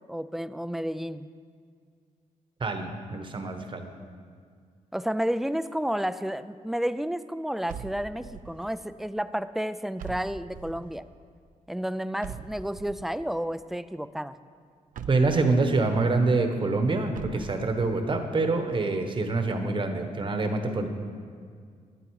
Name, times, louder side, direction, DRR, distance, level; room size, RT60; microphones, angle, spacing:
voice 1, 0.1-1.3 4.9-11.1 11.7-14.4 17.5-17.6, equal, ahead, 14 dB, 0.3 m, -31 dB
voice 2, 2.6-3.9 15.1-20.9, right 3 dB, 35° right, 6 dB, 1.1 m, -26 dB
sound 1, 7.7-8.6 10.0-10.9 12.2-13.2 14.9-15.8 17.1-18.0, right 7 dB, 75° right, 0.6 m, -42 dB
12.0 x 10.5 x 4.8 m, 2.1 s
cardioid pair, 120°, 14 cm